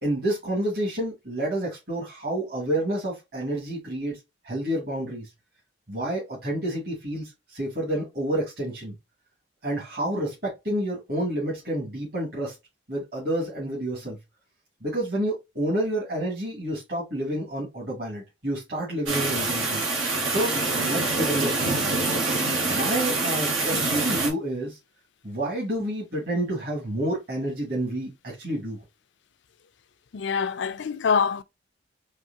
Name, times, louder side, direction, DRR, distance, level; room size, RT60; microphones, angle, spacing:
voice 1, 0.0-4.2 4.4-5.3 5.9-8.9 9.6-12.5 12.9-14.2 14.8-19.8 20.3-22.0 22.7-24.8 25.2-28.8, right 1 dB, 50° right, 2.3 m, -29 dB
sound 1, 19.1-24.3, right 3 dB, 85° right, 1.6 m, -25 dB
voice 2, 30.1-31.4, left 6 dB, 65° left, 0.4 m, -25 dB
4.8 x 3.0 x 2.7 m
head